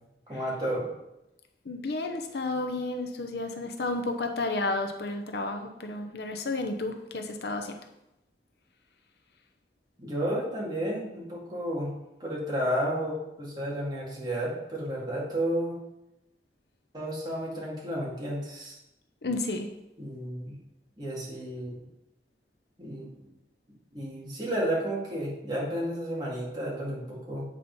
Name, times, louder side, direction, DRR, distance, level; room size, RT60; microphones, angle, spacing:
voice 1, 0.3-0.9 10.0-11.9 12.2-15.8 16.9-18.8 20.0-20.6 21.0-21.8 22.8-23.1 23.9-27.5, equal, 25° right, -5 dB, 2.3 m, -32 dB
voice 2, 1.6-7.8 19.2-19.7, left 2 dB, 70° left, 6 dB, 0.8 m, -32 dB
8.4 x 4.2 x 5.3 m, 0.89 s
head